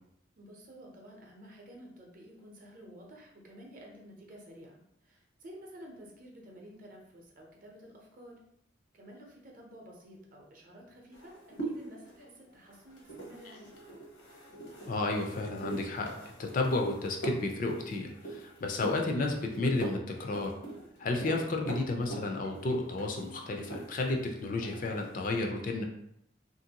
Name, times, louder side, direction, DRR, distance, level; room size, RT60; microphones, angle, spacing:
voice 1, 0.4-8.4 8.9-13.7, equal, 45° right, -1 dB, 0.6 m, -51 dB
sound 1, 11.1-24.2 24.5-25.2, right 2 dB, 75° left, 0.8 m, -43 dB
voice 2, 14.9-16.1 16.4-20.5 21.0-25.8, left 2 dB, 45° left, 2 dB, 0.4 m, -32 dB
2.9 x 2.5 x 2.8 m, 0.77 s
head